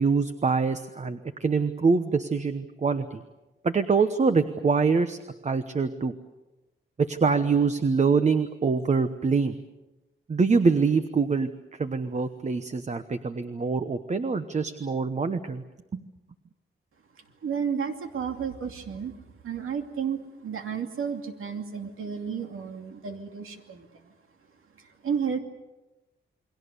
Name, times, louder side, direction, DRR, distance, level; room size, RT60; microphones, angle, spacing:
voice 1, 0.0-3.2 3.6-5.2 5.4-6.1 7.0-9.6 10.3-11.5 11.8-15.6 15.9-16.0, right 4 dB, 35° right, 9 dB, 1.0 m, -24 dB
voice 2, 17.4-19.1 19.4-24.1 24.7-25.4, right 7 dB, 85° right, 4 dB, 2.7 m, -32 dB
29.0 x 22.0 x 6.8 m, 1.1 s
wide cardioid pair, 145°, 21 cm